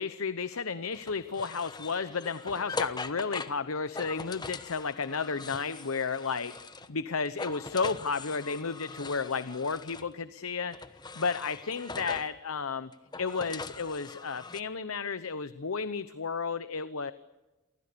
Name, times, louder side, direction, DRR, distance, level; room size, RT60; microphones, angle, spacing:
voice 1, 0.0-6.6 6.9-10.8 11.1-12.9 13.2-17.1, left 5 dB, 90° left, 13 dB, 0.9 m, -32 dB
sound 1, 0.9-7.0 7.3-10.1 10.7-12.4 12.9-14.6, left 3 dB, 20° left, 1.1 m, -41 dB
29.0 x 24.0 x 6.9 m, 1.1 s
head